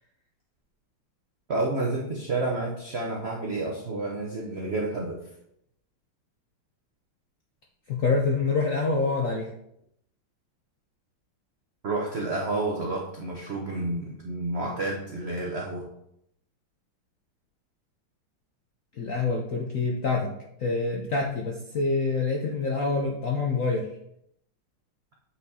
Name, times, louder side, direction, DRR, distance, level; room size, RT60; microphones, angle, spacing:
voice 1, 1.5-5.2 11.8-15.8, right 2 dB, 90° right, -2 dB, 0.5 m, -30 dB
voice 2, 7.9-9.5 19.0-20.3 20.6-23.9, left 4 dB, 70° left, -1 dB, 0.7 m, -26 dB
8.2 x 4.3 x 2.7 m, 0.75 s
omnidirectional pair, 2.3 m